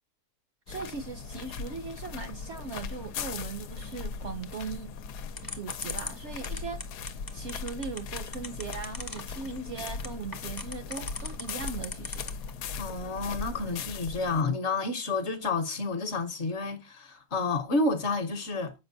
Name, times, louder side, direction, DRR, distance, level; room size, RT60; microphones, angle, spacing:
sound 1, 0.7-14.4, left 5 dB, 90° left, 1.2 m, -39 dB
voice 1, 0.7-4.9 5.5-12.3, right 5 dB, 65° right, 0.7 m, -39 dB
sound 2, 5.4-12.5, left 3 dB, 30° left, 0.4 m, -38 dB
voice 2, 12.8-18.7, left 3 dB, 55° left, 0.9 m, -30 dB
7.3 x 5.0 x 2.6 m
omnidirectional pair, 1.7 m